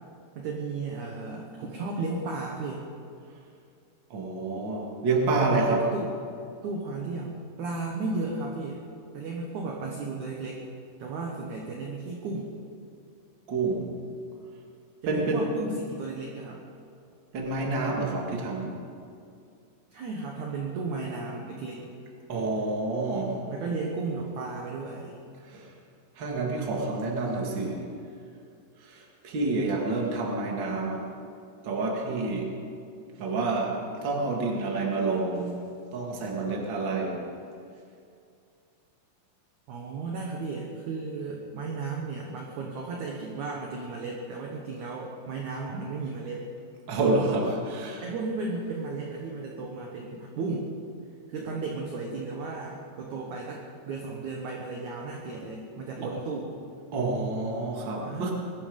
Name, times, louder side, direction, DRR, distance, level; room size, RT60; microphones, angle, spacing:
voice 1, 0.4-2.9 5.5-6.1 6.6-8.8 9.1-10.6 11.0-12.5 15.0-16.6 19.9-21.9 23.5-25.2 39.7-46.5 48.0-50.7 51.3-56.5 58.0-58.3, right 3 dB, 65° right, 0 dB, 2.0 m, -34 dB
voice 2, 4.1-5.8 13.5-13.9 15.1-15.4 17.3-18.8 22.3-23.4 25.5-25.7 26.2-27.8 28.8-31.0 31.6-32.5 33.2-33.7 34.0-35.5 35.9-37.2 46.9-48.0 56.9-58.3, right 3 dB, 35° right, -1 dB, 2.0 m, -28 dB
21.0 x 12.0 x 5.4 m, 2.4 s
omnidirectional pair, 5.0 m